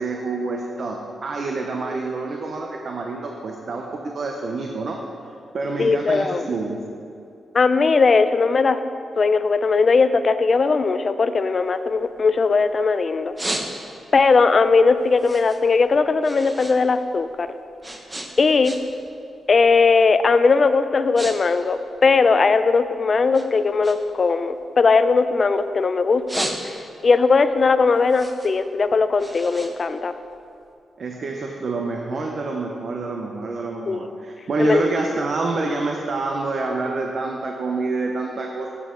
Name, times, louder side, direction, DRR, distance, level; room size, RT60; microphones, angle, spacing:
voice 1, 0.0-5.0 5.5-6.8 31.0-38.7, right 3 dB, 50° right, 1 dB, 0.7 m, -27 dB
voice 2, 5.8-6.5 7.5-8.8 9.2-13.3 14.1-17.5 18.4-18.8 19.5-26.8 27.0-30.1 33.9-34.0 34.6-34.8, left 4 dB, 40° left, 11 dB, 0.4 m, -18 dB
sound 1, 11.6-12.7 13.1-14.2 14.6-16.8 17.1-19.1 19.4-19.7 20.3-20.5 20.8-21.4 21.6-22.9 23.3-25.6 26.0-27.1 27.5-30.6, right 1 dB, 15° right, 0.8 m, -34 dB
11.0 x 8.3 x 3.8 m, 2.5 s
wide cardioid pair, 140°, 0 cm